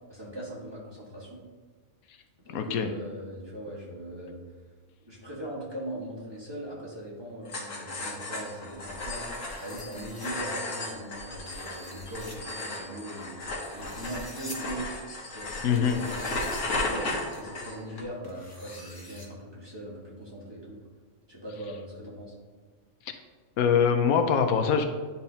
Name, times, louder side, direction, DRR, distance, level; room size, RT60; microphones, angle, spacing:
voice 1, 0.1-1.4 2.4-4.4 5.1-9.2 9.6-14.9 15.3-20.8 21.3-22.3, right 1 dB, 20° right, -5 dB, 1.3 m, -40 dB
voice 2, 2.5-2.9 15.6-16.0 23.6-24.8, left 7 dB, 90° left, 6 dB, 1.1 m, -23 dB
sound 1, 7.5-18.0, left 2 dB, 65° left, 1.5 m, -35 dB
sound 2, 9.3-10.3 11.5-12.4 13.6-14.6 15.7-16.6 17.3-17.4 18.2-19.3, left 2 dB, 20° left, 0.7 m, -47 dB
10.5 x 4.2 x 2.8 m, 1.5 s
omnidirectional pair, 1.4 m